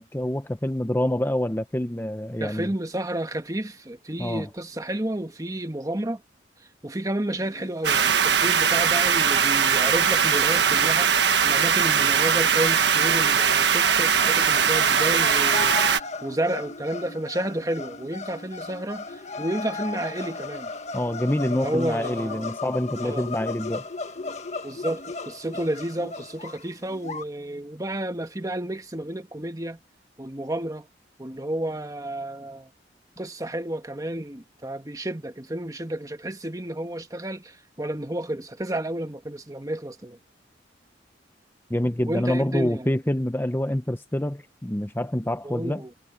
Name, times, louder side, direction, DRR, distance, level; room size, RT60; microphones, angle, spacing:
voice 1, 0.0-2.7 4.2-4.5 20.9-23.8 41.7-45.8, left 1 dB, 10° left, 0.7 m, -26 dB
voice 2, 2.4-6.2 6.8-11.1 11.4-15.8 16.2-20.7 21.5-22.5 23.0-23.3 24.6-29.8 30.2-30.9 31.2-32.7 33.2-40.2 42.1-42.9 45.4-45.9, right 1 dB, 20° right, 1.4 m, -31 dB
sound 1, 7.4-27.2, left 3 dB, 40° left, 1.5 m, -37 dB
sound 2, 7.8-16.0, right 7 dB, 70° right, 1.5 m, -20 dB
head